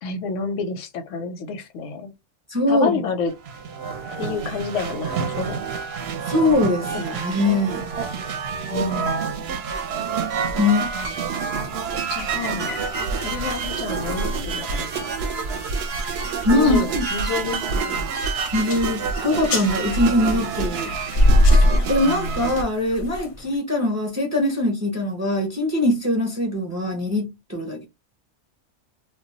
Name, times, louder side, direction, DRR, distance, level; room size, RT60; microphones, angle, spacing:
voice 1, 0.0-2.1 2.7-3.3 4.2-5.6 7.1-7.4 8.7-9.4 11.9-12.7 13.2-15.2 16.5-18.0 22.1-22.5, left 4 dB, 85° left, 0.9 m, -29 dB
voice 2, 2.5-3.0 6.3-7.9 10.6-10.9 16.4-17.1 18.5-20.9 21.5-27.8, left 1 dB, 25° right, 0.4 m, -22 dB
sound 1, 3.3-22.6, right 5 dB, 65° right, 0.7 m, -28 dB
sound 2, 12.2-23.6, left 1 dB, 60° left, 0.6 m, -24 dB
2.2 x 2.2 x 3.8 m
omnidirectional pair, 1.2 m